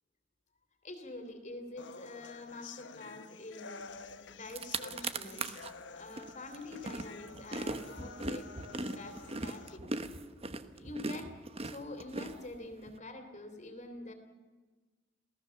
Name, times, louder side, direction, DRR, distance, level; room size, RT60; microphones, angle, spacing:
voice 1, 0.8-4.0 4.3-5.5 5.9-9.9 10.7-14.1, left 2 dB, 40° left, 5 dB, 3.0 m, -46 dB
sound 1, 1.8-9.8, left 4 dB, 70° left, 1.0 m, -50 dB
sound 2, 4.1-4.2 4.4-5.7 6.2-12.9, right 2 dB, 30° right, 1.2 m, -39 dB
27.5 x 18.0 x 7.0 m, 1.3 s
head